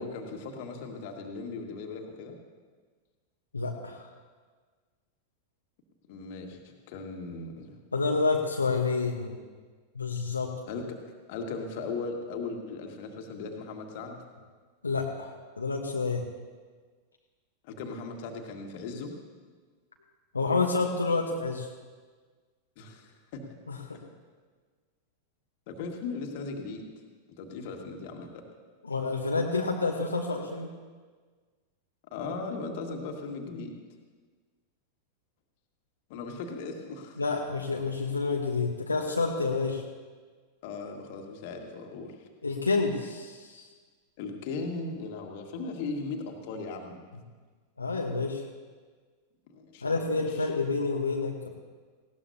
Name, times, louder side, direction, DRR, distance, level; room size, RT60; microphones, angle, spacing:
voice 1, 0.0-2.3 6.1-6.6 6.9-7.7 10.7-10.8 11.3-14.2 17.6-19.1 22.8-23.4 23.9-24.0 25.7-26.8 27.4-28.4 32.1-33.8 36.1-37.2 40.6-42.3 44.2-47.0 49.5-50.5, left 4 dB, 50° left, 3 dB, 1.9 m, -38 dB
voice 2, 3.5-4.1 7.9-9.3 9.9-10.5 14.8-16.3 20.3-21.7 23.7-24.0 28.8-30.7 37.2-39.8 42.4-43.7 47.8-48.4 49.8-51.5, left 4 dB, 80° left, 0 dB, 1.1 m, -29 dB
18.5 x 17.0 x 2.8 m, 1.5 s
figure-of-eight pair, 90°, 0 cm